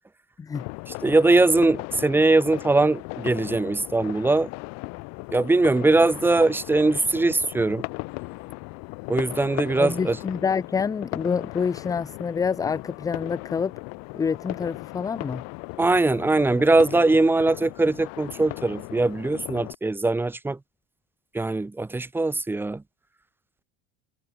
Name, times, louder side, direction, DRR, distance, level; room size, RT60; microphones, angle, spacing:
sound 1, 0.5-19.7, left 30 dB, 55° left, 2.2 m, -37 dB
voice 1, 0.9-4.5 5.3-7.8 9.1-10.2 15.8-20.6 21.3-22.8, right 2 dB, 5° right, 1.5 m, -21 dB
voice 2, 9.8-13.7 14.1-15.4, left 6 dB, 10° left, 0.6 m, -27 dB
cardioid pair, 160°, 31 cm